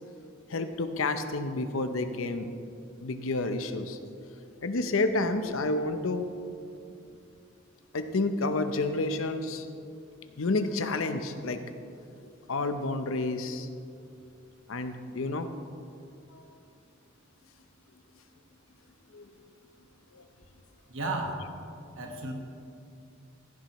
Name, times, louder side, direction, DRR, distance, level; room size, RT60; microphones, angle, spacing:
voice 1, 0.5-2.5 3.0-4.0 4.6-6.3 7.9-9.7 10.4-11.6 12.2-13.7 14.7-15.5 16.3-16.4 19.1-19.3 20.1-20.2, left 2 dB, 90° left, 9 dB, 0.7 m, -30 dB
voice 2, 20.9-21.4 21.9-22.3, right 2 dB, 75° right, 2 dB, 1.5 m, -33 dB
15.5 x 10.5 x 3.1 m, 2.6 s
head